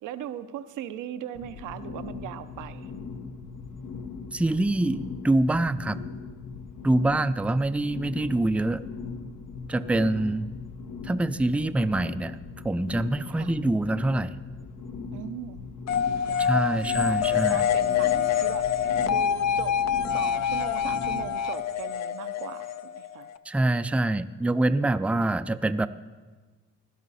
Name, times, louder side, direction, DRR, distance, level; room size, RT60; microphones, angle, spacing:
voice 1, 0.0-2.9 6.8-7.4 9.7-10.5 13.4-13.5 15.1-15.7 16.3-19.8 20.1-23.3, right 11 dB, 85° right, 11 dB, 0.7 m, -40 dB
sound 1, 1.3-21.3, left 5 dB, 80° left, 0.9 m, -40 dB
voice 2, 4.3-6.0 6.8-8.8 9.7-10.5 11.0-12.4 12.6-14.4 16.4-17.7 23.5-25.9, right 2 dB, 5° right, 12 dB, 0.4 m, -25 dB
sound 2, 15.9-23.4, left 8 dB, 60° left, 0.6 m, -26 dB
17.0 x 11.5 x 4.1 m, 1.3 s
cardioid pair, 90°, 30 cm